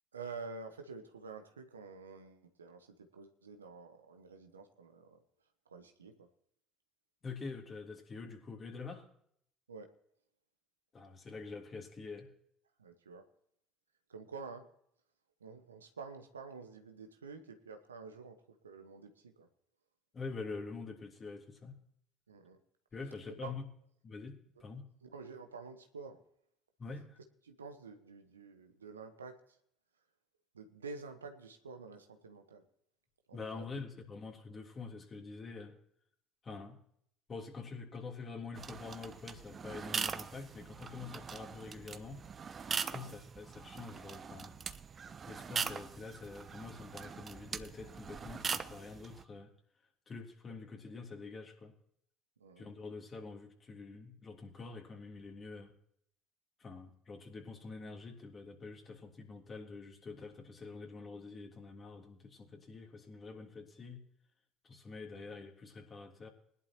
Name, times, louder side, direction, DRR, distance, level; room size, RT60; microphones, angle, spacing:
voice 1, 0.1-5.2 5.6-6.3 9.7-9.9 12.8-13.3 14.1-14.7 15.4-19.5 22.3-22.6 23.3-23.5 24.6-24.7 25.0-26.2 27.4-29.6 30.5-32.7 33.3-33.8 42.9-43.1 52.4-52.9 65.2-65.4, right 4 dB, 90° right, 6 dB, 1.1 m, -49 dB
voice 2, 7.2-9.1 10.9-12.3 20.1-21.7 22.9-23.6 24.0-24.8 26.8-27.2 33.3-35.8 36.4-36.8 37.3-42.2 42.8-44.5 45.3-49.5 50.1-51.7 52.6-55.7 56.6-64.0 64.6-66.3, left 4 dB, 35° left, 1 dB, 3.2 m, -46 dB
sound 1, 38.5-49.2, right 6 dB, 35° right, 0.8 m, -41 dB
20.5 x 11.5 x 3.0 m, 0.70 s
hypercardioid pair, 60°, 0 cm